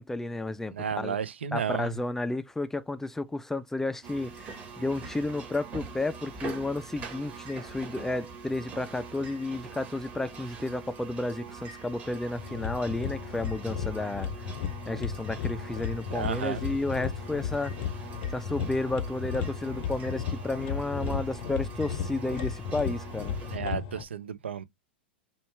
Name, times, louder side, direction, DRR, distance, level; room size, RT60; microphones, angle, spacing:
voice 1, 0.0-1.2 1.5-14.5 14.9-17.7 18.3-23.4, left 2 dB, 5° left, 0.3 m, -32 dB
voice 2, 0.7-2.0 16.1-16.7 23.5-24.6, right 7 dB, 85° right, 0.5 m, -33 dB
sound 1, 4.0-23.6, right 5 dB, 25° right, 1.4 m, -43 dB
sound 2, 12.4-24.0, left 7 dB, 55° left, 0.6 m, -35 dB
4.1 x 2.3 x 3.2 m
hypercardioid pair, 115°, 6 cm